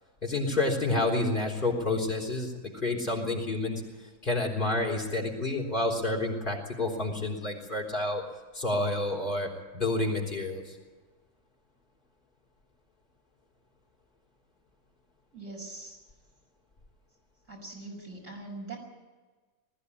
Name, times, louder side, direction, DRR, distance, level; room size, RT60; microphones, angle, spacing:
voice 1, 0.2-3.8 4.2-8.2 8.5-10.6, left 2 dB, 40° left, -1 dB, 4.1 m, -29 dB
voice 2, 15.3-16.0 17.5-18.8, right 2 dB, 70° right, -1 dB, 6.4 m, -42 dB
20.5 x 15.0 x 9.8 m, 1.3 s
omnidirectional pair, 1.4 m